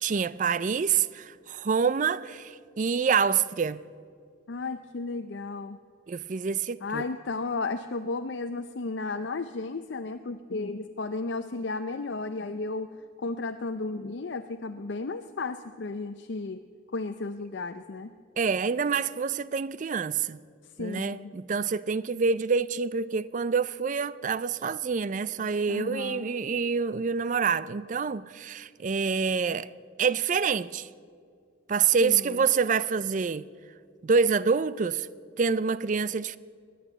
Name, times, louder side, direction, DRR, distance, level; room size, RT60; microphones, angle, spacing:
voice 1, 0.0-3.8 6.1-7.0 18.4-20.4 20.8-29.7 30.0-30.9 31.7-33.5 34.0-35.1 35.4-36.4, right 5 dB, 40° right, 0.4 m, -27 dB
voice 2, 4.5-5.8 6.8-12.9 13.2-16.6 16.9-18.1 20.8-21.3 25.7-26.2 32.0-32.4, left 3 dB, 65° left, 0.5 m, -34 dB
17.5 x 11.0 x 7.0 m
head